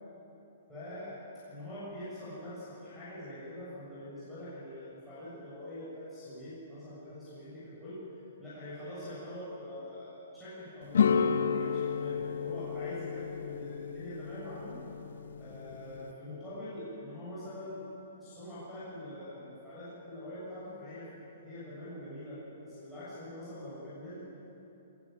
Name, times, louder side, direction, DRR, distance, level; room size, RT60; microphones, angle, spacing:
voice 1, 0.7-1.2 1.5-8.0 8.4-14.8 15.4-17.9 18.1-21.1 21.4-24.2, left 1 dB, ahead, -14 dB, 7.4 m, -44 dB
sound 1, 10.9-16.1, left 6 dB, 80° left, 1.2 m, -32 dB
23.5 x 20.0 x 9.1 m, 3.0 s
hypercardioid pair, 175°, 0 cm